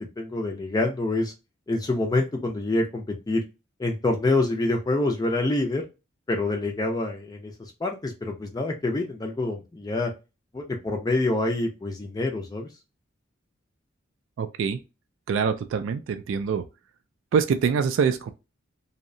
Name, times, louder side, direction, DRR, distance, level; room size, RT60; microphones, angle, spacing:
voice 1, 0.2-1.3 1.7-3.4 3.8-5.8 6.3-7.5 7.8-10.1 10.5-12.7, left 2 dB, 20° left, 0.4 m, -26 dB
voice 2, 14.4-14.8 15.3-16.6 17.3-18.3, right 6 dB, 70° right, 0.3 m, -24 dB
2.7 x 2.0 x 2.5 m
head